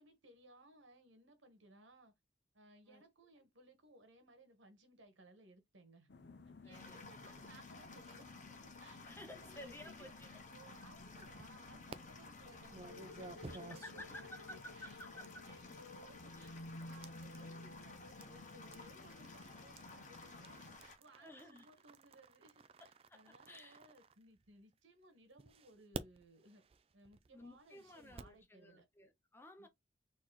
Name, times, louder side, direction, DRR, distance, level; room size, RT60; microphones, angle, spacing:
voice 1, 0.0-2.1 2.5-6.1 6.6-16.5 16.8-22.6 23.1-26.6 26.9-28.9 29.6-29.7, right 1 dB, 90° right, 1.5 m, -62 dB
sound 1, 6.1-20.8, left 2 dB, 65° left, 0.6 m, -55 dB
voice 2, 6.6-7.1 9.0-10.3 13.4-15.5 16.3-16.6 21.2-21.7 22.8-23.8 27.3-29.7, left 1 dB, 10° left, 0.8 m, -55 dB
sound 2, 6.7-21.0, left 3 dB, 40° left, 1.0 m, -56 dB
sound 3, 11.1-12.0 12.7-24.7 25.4-28.4, right 3 dB, 30° right, 0.3 m, -54 dB
4.2 x 3.0 x 3.9 m
head